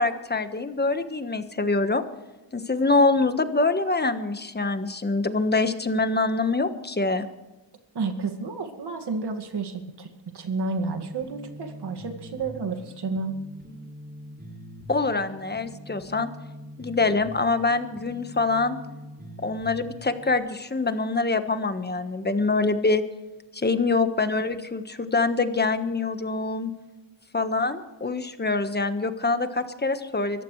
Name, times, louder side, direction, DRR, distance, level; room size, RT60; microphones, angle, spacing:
voice 1, 0.0-2.0 2.5-7.3 14.9-16.3 16.8-18.8 19.4-23.0 23.5-26.7 27.3-30.4, left 3 dB, 20° left, 9 dB, 1.4 m, -25 dB
voice 2, 7.9-13.4, right 4 dB, 60° right, 4 dB, 2.2 m, -31 dB
sound 1, 10.8-20.4, right 1 dB, 20° right, 3.6 m, -43 dB
24.0 x 14.5 x 3.3 m, 1.1 s
cardioid pair, 95°, 45 cm